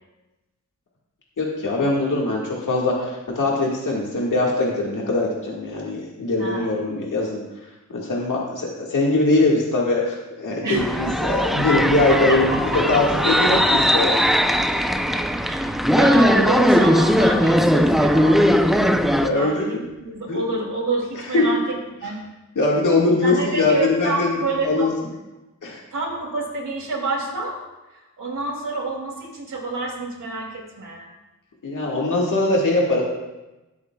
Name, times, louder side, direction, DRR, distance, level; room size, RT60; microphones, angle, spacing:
voice 1, 1.4-7.4 7.9-12.6 12.9-14.2 14.7-14.9 19.2-19.8 20.3-20.4 21.3-21.5 22.6-24.3 24.6-24.9 25.6-25.8 31.6-33.0, left 2 dB, 75° left, -3 dB, 1.9 m, -21 dB
voice 2, 6.4-6.8 10.6-11.0 12.1-12.8 15.1-18.5 19.3-22.2 23.2-24.9 25.9-27.6 27.9-31.1, right 3 dB, 75° right, -2 dB, 3.0 m, -28 dB
sound 1, 10.8-19.3, equal, ahead, 0.6 m, -19 dB
18.0 x 8.5 x 2.4 m, 1.1 s
wide cardioid pair, 80°, 31 cm